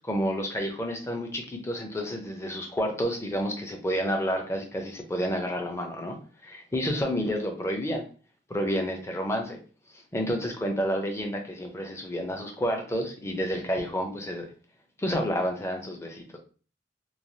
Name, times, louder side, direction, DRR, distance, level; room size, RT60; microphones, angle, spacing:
voice 1, 0.0-6.2 6.4-8.0 8.5-9.6 10.1-14.5 15.0-16.4, equal, 15° left, 3 dB, 0.5 m, -30 dB
3.1 x 2.2 x 2.6 m, 0.38 s
head